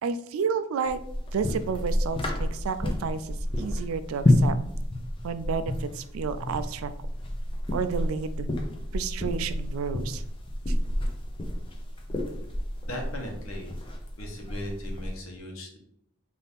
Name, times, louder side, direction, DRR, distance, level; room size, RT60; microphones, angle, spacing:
voice 1, 0.0-1.0 1.3-4.5 5.2-6.9 7.7-8.5 8.9-10.2 10.7-10.8, right 6 dB, 80° right, 12 dB, 0.3 m, -31 dB
sound 1, 0.9-15.2, left 1 dB, 25° left, 0.5 m, -30 dB
voice 2, 12.9-13.8 14.2-15.8, left 1 dB, 80° left, 2 dB, 1.0 m, -38 dB
4.0 x 2.7 x 3.5 m, 0.73 s
head